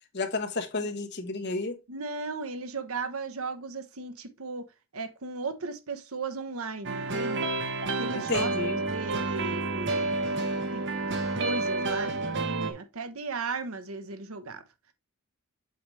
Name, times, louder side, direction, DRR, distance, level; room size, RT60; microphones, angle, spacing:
voice 1, 0.1-1.8 8.1-8.8, left 3 dB, 50° left, 1.3 m, -31 dB
voice 2, 1.9-4.7 4.9-7.5 7.8-8.5 8.9-10.3 10.6-12.1 12.4-14.6, right 3 dB, 70° right, 1.0 m, -36 dB
sound 1, 6.8-12.7, right 3 dB, 55° right, 1.2 m, -29 dB
7.8 x 4.8 x 3.3 m
head